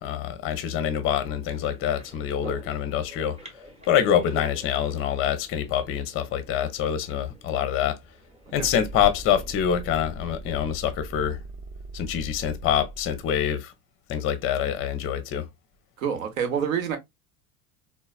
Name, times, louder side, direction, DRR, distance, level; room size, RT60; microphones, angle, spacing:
voice 1, 0.0-3.4 3.9-8.0 8.5-11.4 11.9-13.7 14.1-15.5, left 9 dB, 30° left, 0.6 m, -25 dB
sound 1, 1.3-9.5, right 1 dB, 15° right, 0.9 m, -47 dB
sound 2, 8.5-13.4, right 2 dB, 30° right, 0.5 m, -40 dB
voice 2, 16.0-17.0, right 7 dB, 65° right, 0.9 m, -27 dB
3.9 x 2.1 x 2.3 m
figure-of-eight pair, 75°, 44 cm